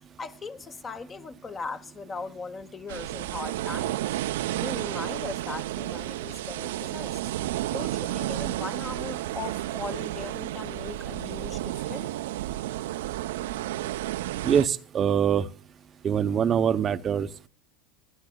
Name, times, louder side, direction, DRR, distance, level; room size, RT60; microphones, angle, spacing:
voice 1, 0.2-4.1 4.6-7.2 7.7-12.1, left 4 dB, 25° left, 0.9 m, -39 dB
sound 1, 2.9-14.7, right 14 dB, 80° right, 0.4 m, -32 dB
voice 2, 14.4-15.5 16.0-17.5, right 8 dB, 35° right, 0.6 m, -24 dB
26.0 x 9.7 x 2.2 m
hypercardioid pair, 105°, 0 cm